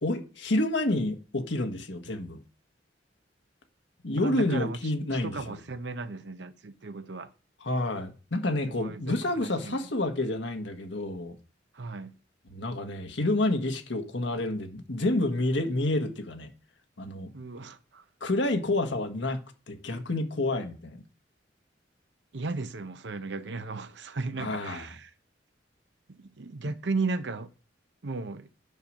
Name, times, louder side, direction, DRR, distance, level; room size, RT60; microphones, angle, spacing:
voice 1, 0.0-2.4 4.0-5.6 7.6-11.4 12.5-16.5 17.0-17.3 18.2-19.4 19.7-21.0 24.4-24.8, left 2 dB, 75° left, 1.5 m, -29 dB
voice 2, 4.2-4.8 5.2-7.3 8.7-9.8 11.7-12.1 17.3-18.0 22.3-25.1 26.2-27.5 28.0-28.5, right 3 dB, 65° right, 0.8 m, -35 dB
9.4 x 5.8 x 6.3 m
head